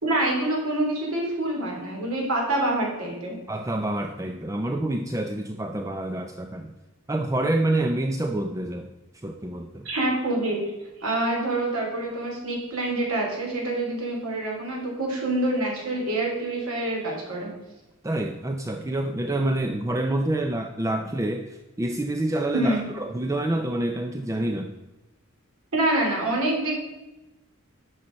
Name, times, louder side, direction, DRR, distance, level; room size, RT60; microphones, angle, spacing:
voice 1, 0.0-3.4 9.8-10.6 11.0-17.5 22.5-22.8 25.7-26.7, right 1 dB, 85° right, -1 dB, 3.2 m, -26 dB
voice 2, 3.5-6.7 7.1-9.9 18.0-24.7, right 1 dB, 15° right, 5 dB, 0.4 m, -27 dB
10.5 x 6.4 x 5.2 m, 1.1 s
head